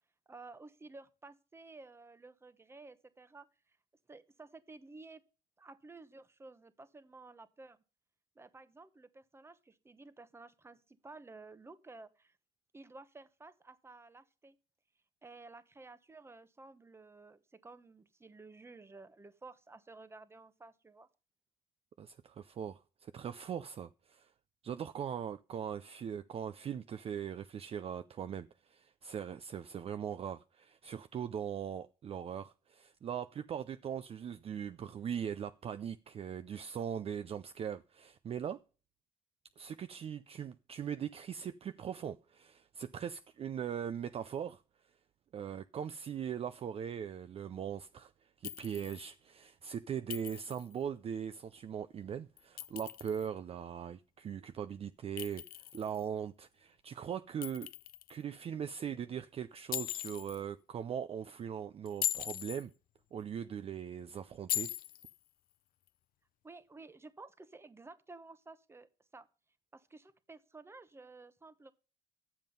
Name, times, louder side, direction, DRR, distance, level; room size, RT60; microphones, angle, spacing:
voice 1, 0.3-3.8 4.1-5.2 5.6-7.8 8.4-12.4 12.7-14.6 15.2-21.1 66.4-69.3 69.7-71.7, right 3 dB, 15° right, 0.8 m, -53 dB
voice 2, 22.0-24.3 24.6-38.6 39.6-44.6 45.3-48.1 48.4-55.4 55.7-57.7 58.1-62.7 63.1-64.7, right 8 dB, 35° right, 0.4 m, -40 dB
Chink clink, 48.4-49.1 50.1-50.7 52.4-53.3 55.2-56.0 57.4-58.2 59.7-60.4 61.9-62.6 64.5-65.1, left 13 dB, 60° left, 0.5 m, -39 dB
10.5 x 7.4 x 5.3 m
cardioid pair, 110°, 17 cm